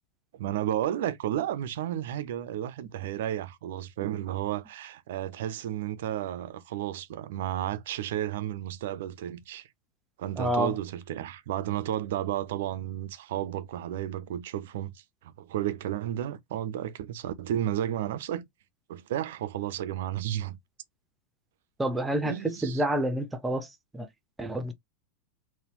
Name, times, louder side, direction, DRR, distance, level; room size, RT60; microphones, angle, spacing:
voice 1, 0.3-9.7 10.2-18.4 18.9-20.6 22.2-22.8, right 12 dB, 55° right, 0.5 m, -32 dB
voice 2, 10.4-10.8 21.8-24.1 24.4-24.7, right 1 dB, 10° right, 0.7 m, -29 dB
4.0 x 2.2 x 3.0 m
figure-of-eight pair, 90°, 0 cm